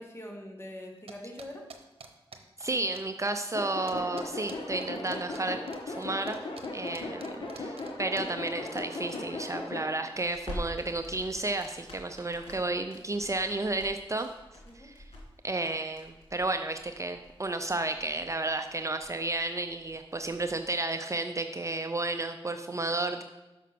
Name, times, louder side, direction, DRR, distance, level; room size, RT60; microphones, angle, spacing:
voice 1, 0.0-1.7 7.0-7.3 14.7-14.9, left 1 dB, 25° left, 1 dB, 1.8 m, -44 dB
sound 1, 1.1-3.0 3.3-3.4 3.6-9.2, right 5 dB, 75° right, 0.8 m, -48 dB
voice 2, 2.6-5.6 5.9-6.4 6.7-7.3 7.5-14.3 14.7-15.0 15.4-23.2, right 2 dB, 30° right, 7 dB, 0.5 m, -32 dB
sound 2, 3.5-9.9, left 2 dB, 60° left, 1.3 m, -37 dB
Crackle, 10.1-20.6, left 1 dB, 80° left, 2.3 m, -47 dB
5.9 x 5.7 x 6.0 m, 1.0 s
cardioid pair, 55°, 10 cm